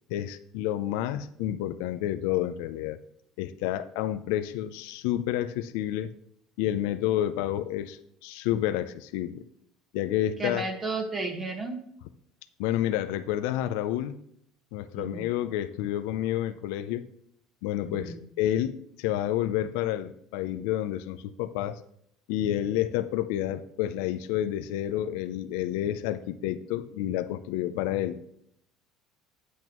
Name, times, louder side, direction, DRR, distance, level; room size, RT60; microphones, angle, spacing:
voice 1, 0.1-3.0 3.4-6.1 6.6-9.4 9.9-10.6 12.6-14.1 14.7-17.0 17.6-21.8 22.3-28.2, left 12 dB, 80° left, 11 dB, 0.5 m, -29 dB
voice 2, 10.4-11.8 15.0-15.3 17.9-18.2, right 3 dB, 30° right, 2 dB, 1.4 m, -33 dB
8.9 x 8.2 x 3.0 m, 0.71 s
supercardioid pair, 110°, 0 cm